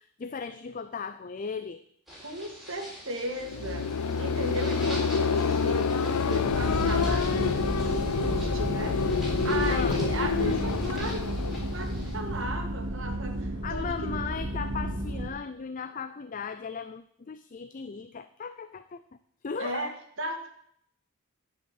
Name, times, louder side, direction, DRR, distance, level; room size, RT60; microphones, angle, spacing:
voice 1, 0.0-1.8 9.7-10.0 13.6-19.0 19.4-19.9, left 5 dB, 35° left, 12 dB, 0.4 m, -37 dB
sound 1, 2.1-12.2, equal, ahead, 3.6 m, -45 dB
voice 2, 2.2-14.2 19.5-19.9 20.2-20.5, right 1 dB, 60° right, 3 dB, 2.0 m, -36 dB
sound 2, 3.4-12.4, left 5 dB, 90° left, 0.5 m, -28 dB
sound 3, 6.4-15.3, right 1 dB, 80° right, 1.7 m, -33 dB
10.5 x 5.5 x 8.2 m, 0.67 s
head